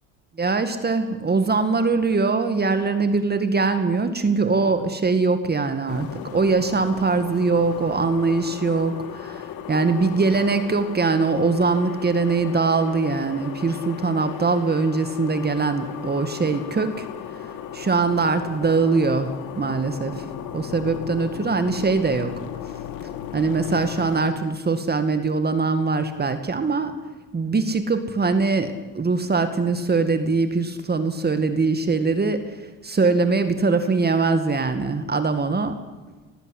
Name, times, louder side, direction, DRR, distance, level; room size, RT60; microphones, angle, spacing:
voice 1, 0.4-17.1 17.7-19.3 19.6-20.2 20.5-22.3 23.3-26.9 27.3-32.6 32.8-35.8, right 4 dB, 25° right, 9 dB, 2.2 m, -22 dB
sound 1, 5.9-24.3, left 10 dB, 65° left, 2.1 m, -36 dB
19.5 x 15.0 x 10.0 m, 1.3 s
supercardioid pair, 80°, 37 cm